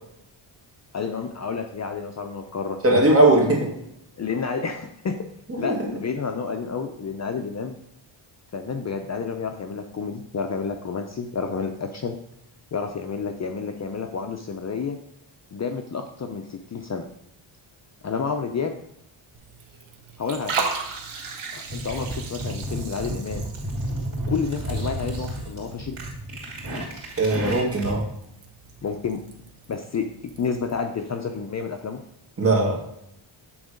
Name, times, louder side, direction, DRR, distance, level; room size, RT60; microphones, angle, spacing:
voice 1, 0.9-2.8 3.5-3.6 4.2-5.2 5.6-7.7 8.5-12.2 12.7-15.0 15.5-17.1 18.0-18.8 20.2-20.7 21.5-23.4 24.3-26.0 28.8-29.2 29.7-32.0, left 5 dB, 35° left, 5 dB, 0.6 m, -30 dB
voice 2, 2.8-3.7 5.6-5.8 27.2-28.0 32.4-32.8, right 2 dB, 30° right, -1 dB, 2.1 m, -19 dB
Liquid, 19.3-30.8, right 4 dB, 90° right, 1.4 m, -37 dB
sound 1, 21.7-28.1, right 1 dB, 60° right, 2.9 m, -32 dB
8.7 x 3.9 x 5.1 m, 0.78 s
cardioid pair, 115°, 49 cm